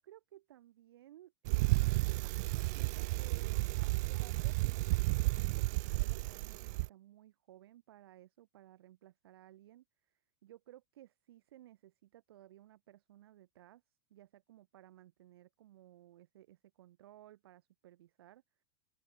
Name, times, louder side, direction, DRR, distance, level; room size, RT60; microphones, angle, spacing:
voice 1, 0.0-2.3 2.6-3.6 4.1-13.8 14.1-18.6, right 13 dB, 70° right, 7.9 m, -58 dB
Bicycle, 1.5-6.9, right 24 dB, 45° right, 1.2 m, -32 dB
open air
supercardioid pair, 170°, 13 cm